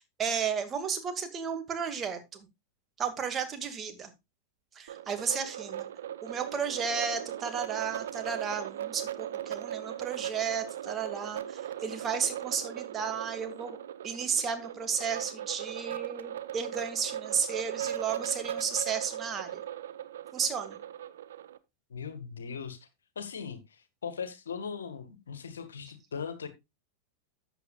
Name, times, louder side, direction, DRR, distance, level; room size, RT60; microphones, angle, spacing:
voice 1, 0.0-2.5 3.0-4.1 4.8-5.9 6.2-13.8 14.0-19.6 20.3-20.8, right 6 dB, 25° right, 2.2 m, -33 dB
sound 1, 4.9-21.6, right 11 dB, 60° right, 0.8 m, -38 dB
voice 2, 21.9-22.9 23.2-26.5, left 6 dB, 70° left, 1.8 m, -39 dB
13.5 x 8.3 x 2.4 m
figure-of-eight pair, 90°, 0 cm